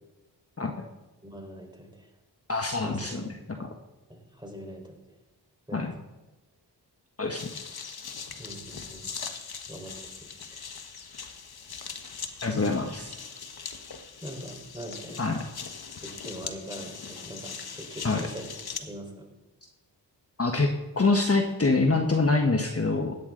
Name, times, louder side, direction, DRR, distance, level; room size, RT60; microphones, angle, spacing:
voice 1, 1.2-2.1 2.8-3.0 4.1-5.2 5.7-5.9 8.4-9.1 9.7-10.7 14.2-15.2 16.0-19.3, right 1 dB, 10° right, 1 dB, 4.5 m, -42 dB
voice 2, 2.5-3.7 5.7-5.9 7.2-7.5 12.4-13.1 15.2-15.4 18.0-18.2 20.4-20.7 21.0-23.2, left 3 dB, 35° left, 3 dB, 1.3 m, -25 dB
sound 1, 7.4-18.8, left 6 dB, 60° left, 1.4 m, -41 dB
17.0 x 10.5 x 3.9 m, 1.1 s
cardioid pair, 40°, 42 cm